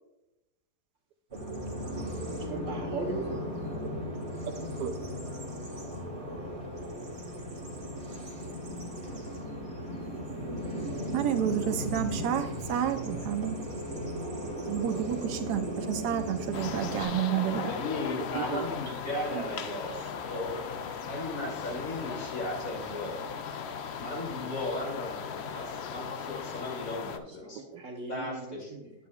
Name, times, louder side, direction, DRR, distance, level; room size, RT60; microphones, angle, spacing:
Bird vocalization bird call bird song, 1.3-17.0, equal, 30° right, 1.5 m, -36 dB
voice 1, 2.3-3.5 27.3-28.9, right 2 dB, 55° right, 1 dB, 1.3 m, -38 dB
voice 2, 11.1-13.6 14.7-17.7 18.3-18.7 19.3-19.5 19.9-20.0 20.3-20.5 27.7-27.8, right 9 dB, 75° right, 8 dB, 1.1 m, -30 dB
sound 1, 16.5-27.2, left 6 dB, 85° left, 0.5 m, -37 dB
voice 3, 17.6-20.6 21.0-23.2 24.0-27.6 28.1-28.7, left 2 dB, 55° left, -3 dB, 3.0 m, -36 dB
9.7 x 8.5 x 2.4 m, 0.97 s
omnidirectional pair, 1.8 m